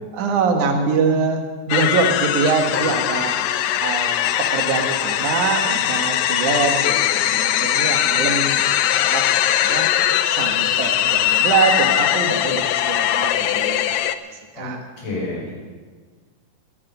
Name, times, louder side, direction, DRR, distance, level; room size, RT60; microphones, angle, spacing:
voice 1, 0.1-3.3 3.8-4.1 4.4-8.8 9.0-9.9 10.2-14.0 14.6-14.8, right 5 dB, 75° right, 4 dB, 2.8 m, -23 dB
sound 1, 1.7-14.1, left 12 dB, 80° left, 1.6 m, -20 dB
voice 2, 15.0-15.5, left 2 dB, 60° left, -6 dB, 7.0 m, -29 dB
23.0 x 8.8 x 5.5 m, 1.5 s
omnidirectional pair, 3.6 m